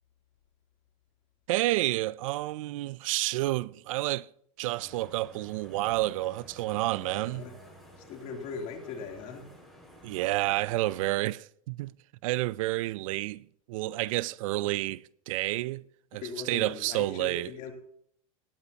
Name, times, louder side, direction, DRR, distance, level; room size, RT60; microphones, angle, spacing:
voice 1, 1.5-4.3 4.6-7.4 10.0-11.9 12.2-13.4 13.7-15.8 16.1-16.2 16.5-17.5, right 18 dB, 65° right, 0.4 m, -29 dB
sound 1, 4.8-11.1, equal, ahead, 5.4 m, -52 dB
voice 2, 7.0-7.6 8.0-9.5 14.6-14.8 16.2-17.7, left 5 dB, 45° left, 3.1 m, -40 dB
18.0 x 13.5 x 2.9 m
supercardioid pair, 140°, 18 cm